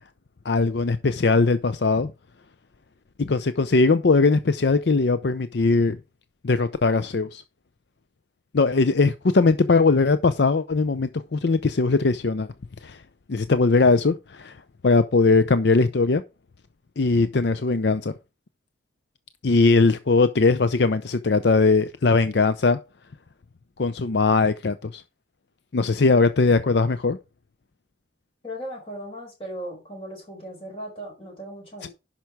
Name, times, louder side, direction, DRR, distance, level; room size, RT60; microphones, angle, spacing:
voice 1, 0.4-2.1 3.2-6.0 6.4-7.4 8.5-12.5 12.8-13.0 13.3-14.6 14.8-16.2 17.0-18.1 19.4-22.8 23.8-25.0 25.7-27.2 31.8-31.9, left 3 dB, 70° left, 0.6 m, -20 dB
voice 2, 28.4-31.9, equal, 30° left, 4.9 m, -37 dB
10.5 x 5.9 x 4.8 m
head